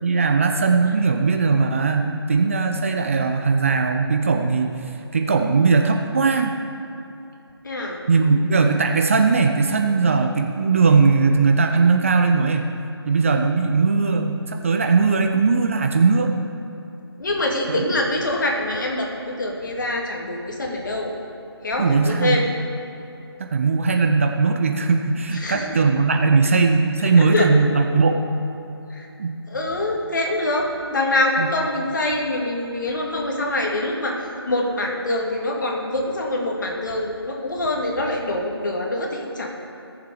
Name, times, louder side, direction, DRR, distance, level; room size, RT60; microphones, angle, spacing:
voice 1, 0.0-4.7 5.1-6.5 8.1-12.7 13.1-16.3 17.7-17.8 21.8-22.4 23.4-28.3 29.2-29.4 31.4-31.5, right 4 dB, 30° right, 4 dB, 0.6 m, -19 dB
voice 2, 7.6-8.0 17.2-21.1 21.6-22.4 25.3-25.8 27.2-27.5 28.9-29.1 29.5-34.2 34.5-39.5, left 1 dB, 45° left, 0 dB, 2.2 m, -24 dB
17.5 x 7.4 x 4.9 m, 2.8 s
figure-of-eight pair, 155°, 14 cm